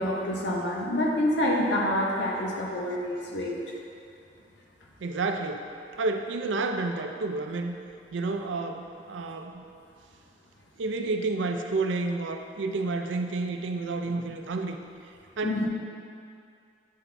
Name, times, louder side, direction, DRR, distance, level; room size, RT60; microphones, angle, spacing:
voice 1, 0.0-3.6 15.4-15.7, left 1 dB, 70° left, -2 dB, 0.9 m, -27 dB
voice 2, 5.0-5.7 6.0-7.8 8.1-9.6 10.8-14.8 15.4-15.6, right 3 dB, 85° right, 5 dB, 0.5 m, -30 dB
8.3 x 4.0 x 3.4 m, 2.4 s
head